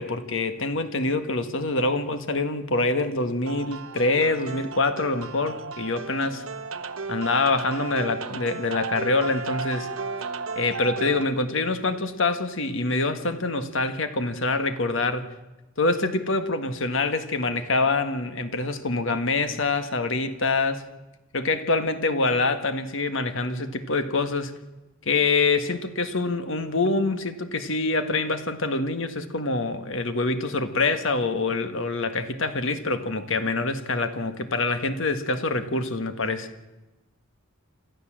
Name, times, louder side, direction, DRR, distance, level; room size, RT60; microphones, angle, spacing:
voice 1, 0.0-6.4 7.1-9.9 10.5-15.3 15.8-20.9 21.3-24.6 25.0-36.5, left 3 dB, 65° left, 9 dB, 1.7 m, -25 dB
sound 1, 3.4-11.2, right 4 dB, 85° right, 1.3 m, -34 dB
28.0 x 13.5 x 7.6 m, 1.0 s
head